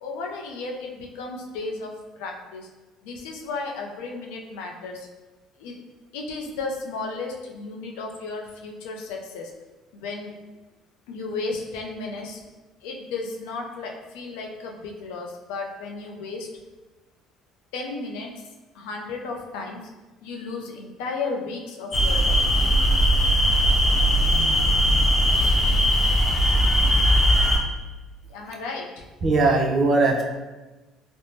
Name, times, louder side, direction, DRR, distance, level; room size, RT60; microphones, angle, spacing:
voice 1, 0.0-2.7 3.0-5.1 5.6-5.8 6.1-9.5 9.9-10.3 11.1-12.4 12.8-16.5 17.7-18.3 18.7-19.8 20.2-22.4 28.3-29.1, left 3 dB, 90° left, 1 dB, 0.4 m, -34 dB
sound 1, 21.9-27.6, equal, 25° left, 0.5 m, -19 dB
voice 2, 29.2-30.2, right 3 dB, 45° right, 2 dB, 0.5 m, -19 dB
3.3 x 2.0 x 2.7 m, 1.2 s
supercardioid pair, 85°, 0 cm